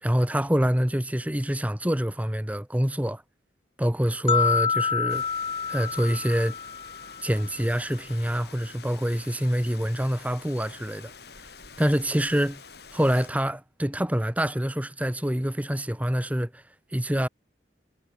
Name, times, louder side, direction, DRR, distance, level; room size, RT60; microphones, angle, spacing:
voice 1, 0.0-3.2 3.8-5.3 5.7-6.5 7.2-11.1 11.8-12.6 12.9-16.6 16.9-17.3, equal, 10° right, 1.2 m, -26 dB
sound 1, 4.3-7.4, left 6 dB, 30° left, 2.6 m, -27 dB
Rain, 5.1-13.3, left 5 dB, 55° left, 5.9 m, -47 dB
head